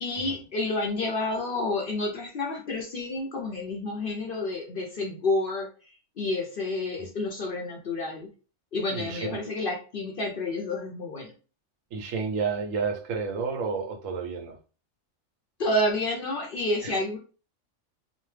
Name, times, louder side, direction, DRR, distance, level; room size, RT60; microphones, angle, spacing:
voice 1, 0.0-8.3 8.7-11.3 15.6-17.2, left 2 dB, 60° left, 0 dB, 0.6 m, -29 dB
voice 2, 8.9-9.5 11.9-14.6 16.8-17.0, right 5 dB, 75° right, 4 dB, 1.0 m, -31 dB
3.0 x 2.0 x 3.2 m, 0.37 s
omnidirectional pair, 1.4 m